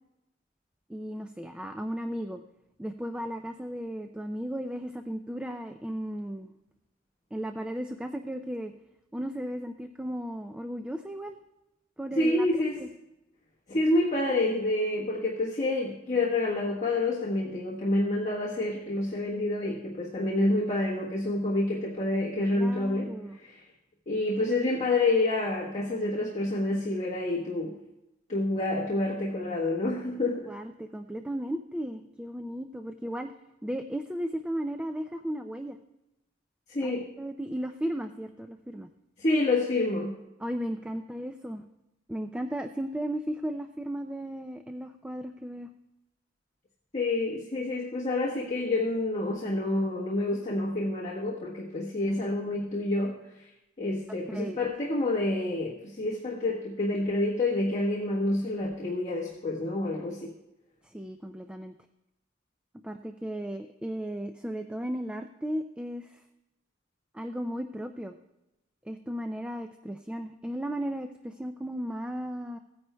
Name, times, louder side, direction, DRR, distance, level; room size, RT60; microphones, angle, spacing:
voice 1, 0.9-2.4 2.8-6.5 7.3-8.7 9.1-11.4 12.0-12.5 12.8-12.9 22.5-23.4 30.5-33.3 33.6-35.8 36.8-38.9 40.4-41.7 42.1-45.7 54.3-54.7 60.8-61.7 62.8-66.2 67.1-68.2 68.9-72.6, equal, 5° right, 7 dB, 0.3 m, -35 dB
voice 2, 12.2-12.8 13.7-23.1 23.5-23.6 24.1-27.8 28.3-30.5 36.7-37.0 39.2-40.2 46.9-53.2 53.8-60.3, left 2 dB, 40° left, -5 dB, 1.2 m, -28 dB
17.0 x 9.5 x 2.2 m, 0.92 s
head